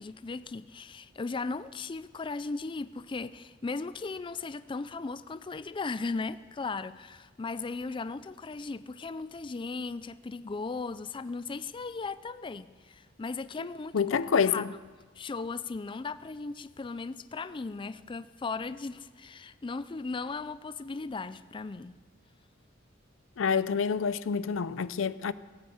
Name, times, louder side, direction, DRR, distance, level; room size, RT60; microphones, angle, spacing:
voice 1, 0.0-14.2 14.4-14.8 15.2-22.0, left 4 dB, 25° left, 0.4 m, -37 dB
voice 2, 13.9-14.7 23.4-25.3, left 6 dB, 85° left, 0.5 m, -27 dB
16.5 x 9.0 x 7.9 m
head